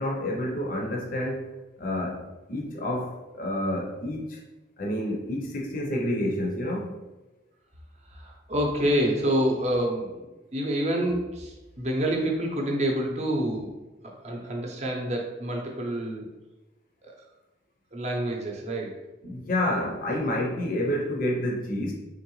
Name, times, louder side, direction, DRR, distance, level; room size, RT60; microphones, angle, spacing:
voice 1, 0.0-1.5 1.8-4.4 4.8-6.9 19.2-21.9, left 1 dB, 45° left, -1 dB, 0.6 m, -29 dB
voice 2, 8.1-10.3 10.5-13.7 14.0-16.3 17.0-17.2 17.9-19.0, right 1 dB, 35° right, 0 dB, 0.6 m, -27 dB
3.8 x 3.0 x 3.1 m, 1.1 s
head